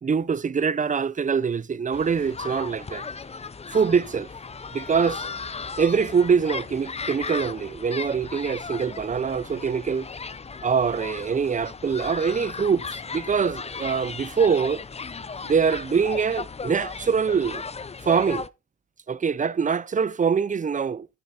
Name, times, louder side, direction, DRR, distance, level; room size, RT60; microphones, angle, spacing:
voice 1, 0.0-3.0 3.7-4.3 4.7-5.3 5.8-10.1 10.6-14.8 15.4-17.6 18.1-18.4 19.1-21.1, right 6 dB, 25° right, 0.6 m, -24 dB
sound 1, 1.9-18.5, left 5 dB, 20° left, 0.6 m, -36 dB
9.8 x 6.8 x 4.2 m
cardioid pair, 90°, 30 cm